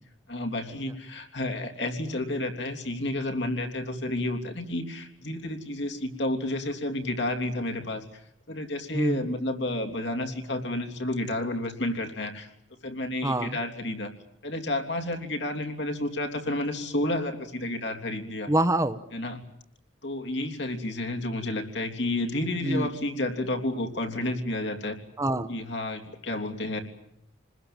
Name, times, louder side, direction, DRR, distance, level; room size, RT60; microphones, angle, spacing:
voice 1, 0.3-8.0 8.5-12.5 12.8-14.1 14.4-18.5 19.1-19.4 20.0-25.0 25.5-26.8, left 1 dB, 65° left, 4 dB, 3.4 m, -31 dB
voice 2, 8.9-9.3 13.2-13.6 18.5-19.0 22.6-22.9 25.2-25.5, right 1 dB, 15° right, 11 dB, 1.0 m, -25 dB
28.0 x 21.0 x 9.0 m, 0.75 s
head